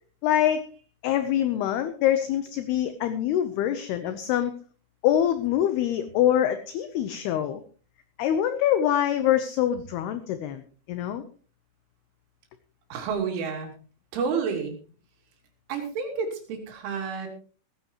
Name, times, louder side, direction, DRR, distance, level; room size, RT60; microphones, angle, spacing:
voice 1, 0.2-0.7 1.0-4.5 5.0-7.6 8.2-10.6 10.9-11.2, left 11 dB, 75° left, 10 dB, 2.6 m, -24 dB
voice 2, 12.9-13.7 14.1-14.8 15.7-17.3, right 5 dB, 85° right, 3 dB, 5.3 m, -30 dB
18.0 x 15.5 x 3.0 m, 0.38 s
omnidirectional pair, 5.4 m